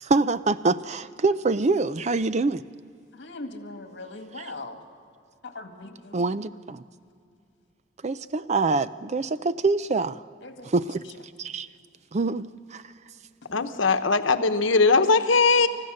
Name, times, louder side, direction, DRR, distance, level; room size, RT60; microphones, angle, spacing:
voice 1, 0.0-2.6 4.4-4.5 6.1-6.8 8.0-10.2 10.6-11.0 11.4-11.7 12.1-12.8, right 3 dB, 35° right, 15 dB, 0.5 m, -25 dB
voice 2, 3.1-4.8 5.4-6.2 10.4-10.7 13.5-13.6, left 2 dB, 65° left, 5 dB, 2.0 m, -40 dB
voice 3, 13.5-15.7, left 4 dB, 85° left, 9 dB, 1.0 m, -20 dB
30.0 x 14.5 x 6.5 m, 2.4 s
head